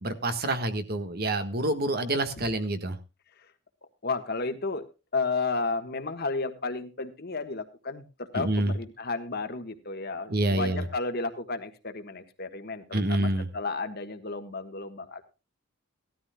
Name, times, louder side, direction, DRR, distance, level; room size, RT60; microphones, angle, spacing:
voice 1, 0.0-3.0 8.3-8.8 10.3-10.8 12.9-13.5, right 1 dB, 50° right, 9 dB, 1.5 m, -27 dB
voice 2, 4.0-4.8 5.1-15.2, left 3 dB, 50° left, 8 dB, 1.4 m, -32 dB
17.5 x 13.0 x 2.3 m, 0.29 s
head